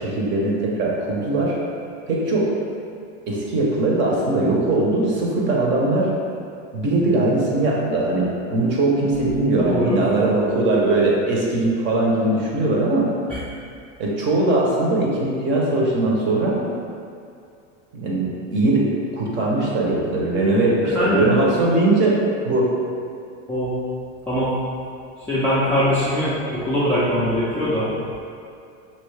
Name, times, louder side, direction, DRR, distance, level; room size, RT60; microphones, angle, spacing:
voice 1, 0.0-1.6 2.1-2.6 3.3-6.1 6.7-13.1 14.0-16.6 17.9-22.7, right 2 dB, 30° right, -3 dB, 0.7 m, -20 dB
voice 2, 9.5-10.0 13.3-13.4 20.8-21.3 23.5-23.7 24.3-24.6 25.3-27.9, equal, 5° left, -12 dB, 0.4 m, -22 dB
5.4 x 2.9 x 3.2 m, 2.4 s
supercardioid pair, 145°, 38 cm